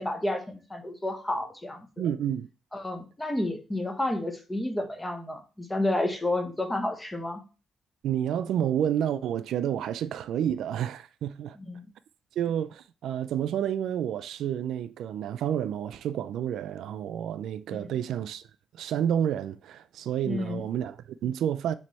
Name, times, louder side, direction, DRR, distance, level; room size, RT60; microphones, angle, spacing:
voice 1, 0.0-1.9 2.7-7.4 11.6-11.8 17.7-17.9 20.3-20.6, left 1 dB, 10° left, 1.1 m, -30 dB
voice 2, 2.0-2.5 8.0-11.6 12.4-18.4 18.8-21.7, right 9 dB, 80° right, 0.4 m, -30 dB
7.5 x 3.3 x 4.1 m
cardioid pair, 145°, 0 cm